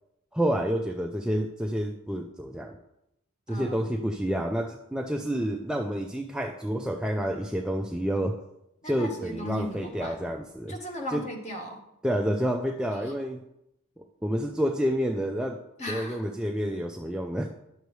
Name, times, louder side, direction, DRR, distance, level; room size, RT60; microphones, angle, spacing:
voice 1, 0.3-2.8 3.5-8.3 8.8-10.7 11.1-11.2 12.0-13.4 14.0-15.6 15.9-17.5, equal, 5° right, 2 dB, 0.3 m, -29 dB
voice 2, 3.5-3.9 8.8-10.1 10.7-11.8 12.9-13.1 15.8-16.3, left 1 dB, 30° left, 1 dB, 1.2 m, -37 dB
10.0 x 6.6 x 3.2 m, 0.85 s
head